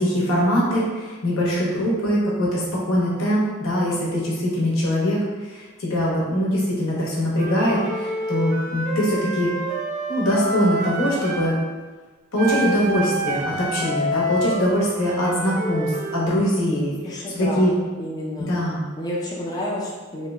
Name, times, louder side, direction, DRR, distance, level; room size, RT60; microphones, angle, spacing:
voice 1, 0.0-5.2 5.5-9.5 10.1-11.5 12.3-16.9 17.3-17.7 18.4-18.8, equal, 90° left, -5 dB, 0.9 m, -22 dB
Wind instrument woodwind instrument, 7.3-11.6 12.4-16.3, right 1 dB, 40° right, 0.4 m, -28 dB
voice 2, 17.0-18.5 19.0-20.3, left 1 dB, 20° left, -5 dB, 0.4 m, -30 dB
2.9 x 2.1 x 3.4 m, 1.4 s
head